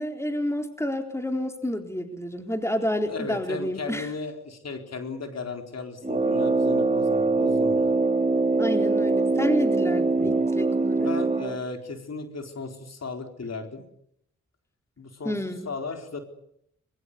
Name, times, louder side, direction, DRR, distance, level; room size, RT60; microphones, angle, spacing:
voice 1, 0.0-4.1 8.6-11.1 15.2-15.7, equal, 10° left, 5 dB, 4.0 m, -29 dB
voice 2, 3.1-7.9 10.2-10.4 11.0-13.8 15.0-15.4 15.7-16.2, left 4 dB, 60° left, 5 dB, 4.3 m, -35 dB
Brass instrument, 6.0-11.6, right 3 dB, 25° right, 2.8 m, -23 dB
22.5 x 22.5 x 8.4 m, 0.71 s
cardioid pair, 45°, 30 cm